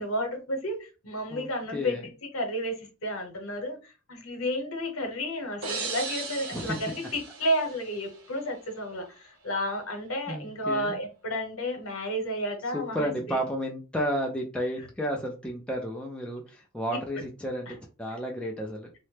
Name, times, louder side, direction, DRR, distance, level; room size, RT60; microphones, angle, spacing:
voice 1, 0.0-2.0 2.3-7.0 7.4-13.4 16.9-17.0, equal, 70° left, 0.9 m, -32 dB
voice 2, 1.3-2.1 6.5-6.8 10.3-11.0 12.7-18.9, equal, 5° left, 0.3 m, -32 dB
sound 1, 5.6-8.4, right 4 dB, 75° right, 0.9 m, -37 dB
2.8 x 2.1 x 3.2 m
head